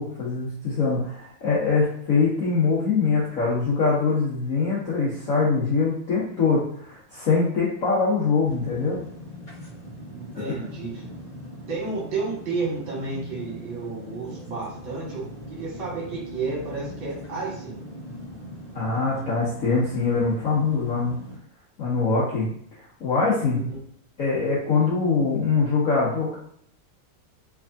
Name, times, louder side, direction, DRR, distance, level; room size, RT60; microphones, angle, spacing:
voice 1, 0.0-9.0 10.3-10.4 18.7-21.2 21.8-22.5 23.0-23.6 24.2-26.4, left 4 dB, 60° left, -7 dB, 0.9 m, -23 dB
sound 1, 8.4-21.4, equal, 25° left, 1.3 m, -40 dB
voice 2, 10.1-11.0 11.7-15.2 15.5-17.9 23.4-23.8 24.6-24.9, right 4 dB, 65° right, -5 dB, 2.1 m, -32 dB
3.5 x 3.3 x 2.5 m, 0.64 s
omnidirectional pair, 2.3 m